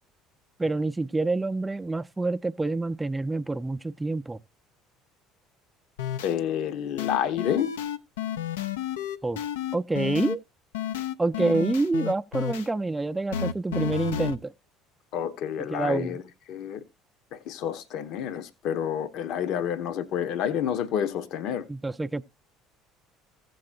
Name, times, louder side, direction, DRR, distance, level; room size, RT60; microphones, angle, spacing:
voice 1, 0.6-4.4 9.2-9.4 9.7-10.4 11.2-14.5 15.7-16.2 21.7-22.2, right 3 dB, 15° right, 0.5 m, -27 dB
sound 1, 6.0-6.3 7.0-10.4 10.7-12.7 13.3-14.4, left 9 dB, 80° left, 0.5 m, -31 dB
voice 2, 6.2-7.7 15.1-16.2 16.5-16.8 17.3-21.7, left 9 dB, 60° left, 0.9 m, -29 dB
15.0 x 7.8 x 2.6 m
hypercardioid pair, 65°, 0 cm